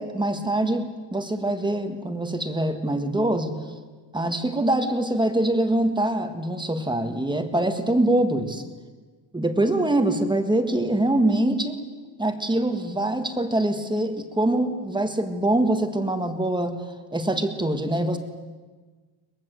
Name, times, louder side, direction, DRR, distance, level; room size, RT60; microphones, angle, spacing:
voice 1, 0.0-3.6 4.1-8.6 9.3-11.8 12.2-18.2, right 1 dB, 10° right, 7 dB, 1.7 m, -24 dB
23.0 x 21.5 x 7.9 m, 1.4 s
cardioid pair, 160°, 47 cm